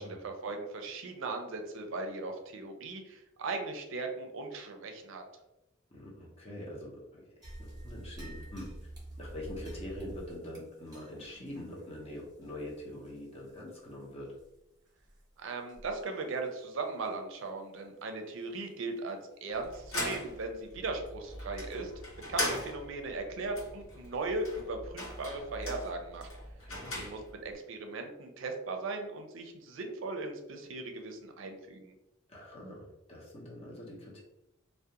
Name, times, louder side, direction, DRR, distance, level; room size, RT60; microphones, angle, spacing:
voice 1, 0.0-5.2 15.4-21.9 22.3-26.3 26.9-31.9, right 3 dB, 65° right, 4 dB, 0.4 m, -38 dB
voice 2, 5.9-7.2 7.6-8.9 9.2-14.3 22.2-22.6 26.6-27.1 32.3-34.2, left 1 dB, 30° left, -3 dB, 0.6 m, -44 dB
sound 1, 7.4-14.0 14.3-14.5 15.0-15.2 15.7-16.0 16.3-16.5 17.0-17.1 19.5-19.6 20.2-20.3, right 1 dB, 20° right, 0.7 m, -48 dB
sound 2, 19.5-27.5, left 1 dB, 85° left, 0.9 m, -40 dB
2.3 x 2.1 x 2.8 m, 0.92 s
head